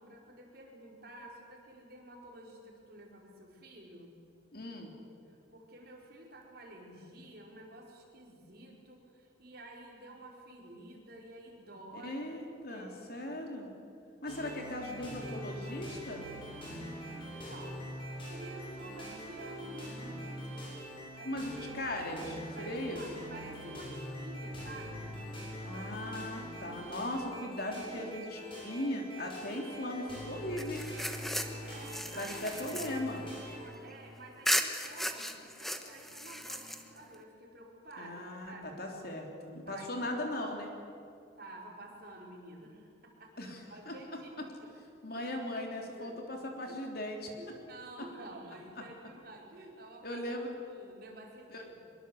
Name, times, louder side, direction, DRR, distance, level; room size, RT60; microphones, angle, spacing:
voice 1, 0.0-4.2 5.3-12.2 12.7-13.3 17.2-17.9 18.3-20.4 21.1-21.3 22.5-25.2 31.3-32.3 33.6-38.8 39.7-40.1 41.4-44.7 45.1-45.3 46.0-46.2 46.7-46.8 47.3-50.3 50.6-51.7, right 1 dB, 55° right, -1 dB, 4.8 m, -50 dB
voice 2, 4.5-4.9 11.9-13.7 14.2-16.3 21.2-23.0 25.6-30.9 32.1-33.2 38.0-40.7 43.4-44.5 45.0-47.3 50.0-50.5 51.5-51.6, left 1 dB, 50° left, 2 dB, 3.6 m, -38 dB
sound 1, 14.3-33.6, equal, 30° left, 7.1 m, -43 dB
sound 2, 30.6-34.0 34.4-37.1, equal, ahead, 1.1 m, -36 dB
24.0 x 22.5 x 8.0 m, 2.5 s
head